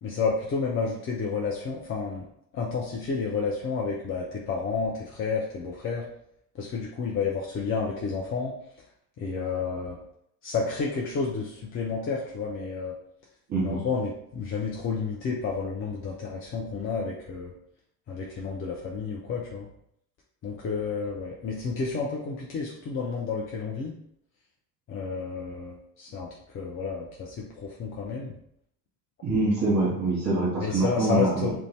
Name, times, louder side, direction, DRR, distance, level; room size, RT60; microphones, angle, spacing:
voice 1, 0.0-2.3 2.5-6.1 6.6-8.5 9.2-10.0 10.4-12.9 13.6-17.5 18.1-19.7 20.4-24.0 24.9-26.3 26.5-28.3 30.6-31.6, left 5 dB, 30° left, -3 dB, 0.5 m, -30 dB
voice 2, 13.5-13.8 29.2-31.6, right 2 dB, 35° right, -8 dB, 1.1 m, -25 dB
2.5 x 2.2 x 3.1 m, 0.73 s
figure-of-eight pair, 60°, 48 cm